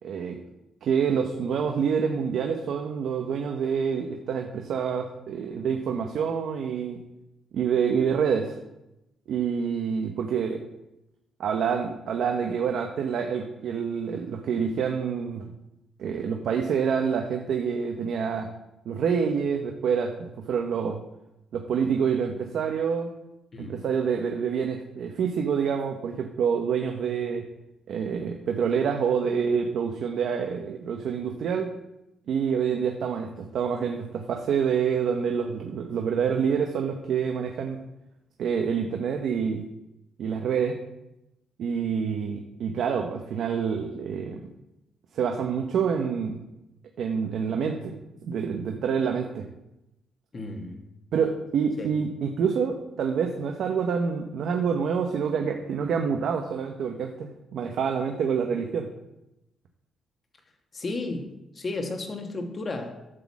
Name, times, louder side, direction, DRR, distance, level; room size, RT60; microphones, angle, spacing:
voice 1, 0.0-0.4 0.8-7.0 7.5-8.6 9.3-10.6 11.4-15.5 16.0-18.5 18.8-21.0 21.5-23.1 23.6-27.5 27.9-31.7 32.3-37.8 38.4-39.6 40.2-40.8 41.6-44.4 45.1-46.4 47.0-48.0 48.2-49.4 51.1-58.9, right 6 dB, 70° right, 3 dB, 0.9 m, -27 dB
voice 2, 23.5-23.8 50.3-50.8 51.8-52.0 60.7-63.1, left 2 dB, 35° left, 4 dB, 1.5 m, -34 dB
11.0 x 4.0 x 7.3 m, 0.91 s
cardioid pair, 90°, 0 cm